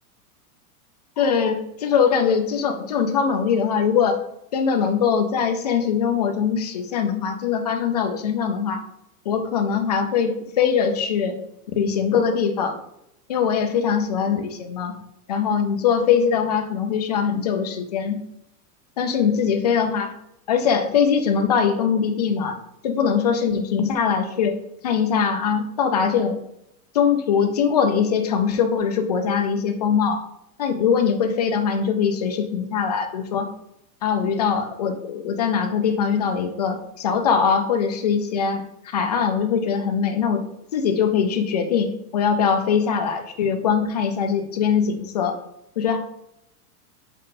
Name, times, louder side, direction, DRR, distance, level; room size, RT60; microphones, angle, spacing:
voice 1, 1.2-4.2 4.5-8.8 9.3-11.4 11.8-12.8 13.3-15.0 15.3-18.2 19.0-20.1 20.5-24.6 24.8-26.4 26.9-30.2 30.6-33.5 34.0-40.4 40.7-45.4 45.8-46.0, left 6 dB, 30° left, 5 dB, 0.3 m, -22 dB
5.4 x 5.4 x 4.0 m, 0.81 s
supercardioid pair, 170°, 45 cm